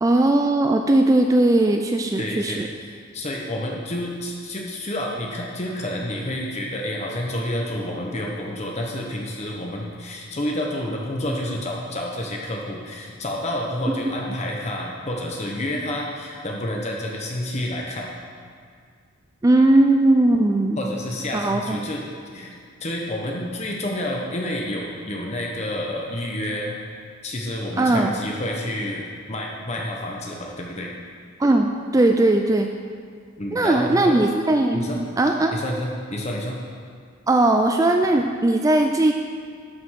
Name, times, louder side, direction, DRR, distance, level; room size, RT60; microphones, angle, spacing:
voice 1, 0.0-2.7 19.4-20.8 21.3-21.8 27.8-28.1 31.4-32.7 33.5-35.6 37.3-39.1, right 2 dB, 15° right, 4 dB, 0.3 m, -19 dB
voice 2, 2.2-2.9 3.1-18.1 20.8-22.0 22.3-22.5 22.8-26.8 27.2-30.9 33.4-34.2 34.7-35.0 35.5-36.6, left 1 dB, 30° left, -1 dB, 0.9 m, -29 dB
11.5 x 5.1 x 6.3 m, 2.1 s
head